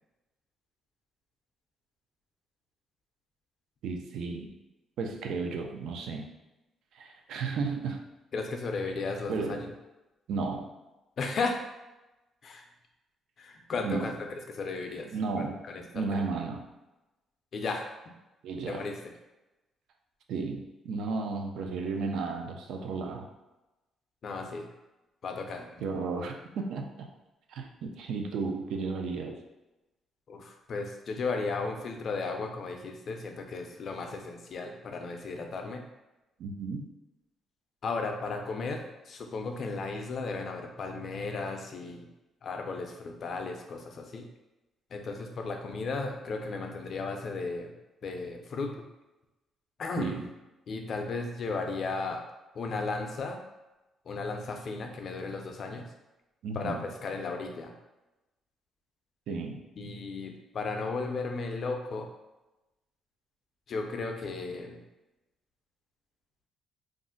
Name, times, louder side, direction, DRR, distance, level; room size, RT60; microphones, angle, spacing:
voice 1, 3.8-4.5 5.0-6.3 6.9-8.0 9.3-9.7 10.3-10.7 13.8-14.1 15.1-15.6 15.9-16.6 18.4-18.8 20.3-23.3 25.8-27.1 27.5-29.4 36.4-36.9 50.0-50.3 56.4-56.8 59.3-59.6, right 4 dB, 80° right, 3 dB, 0.4 m, -33 dB
voice 2, 8.3-9.6 11.2-11.6 12.4-12.6 13.4-14.1 14.5-15.1 15.4-15.8 16.1-16.3 17.5-17.8 18.7-18.9 24.2-24.7 25.2-25.9 30.3-35.8 37.8-42.1 42.4-44.3 44.9-47.8 48.0-48.8 49.8-50.3 50.7-52.2 52.5-53.4 54.1-55.9 56.5-57.7 59.8-62.1 63.7-64.8, left 3 dB, 50° left, 3 dB, 0.4 m, -35 dB
2.4 x 2.1 x 3.7 m, 1.0 s
cardioid pair, 115°, 0 cm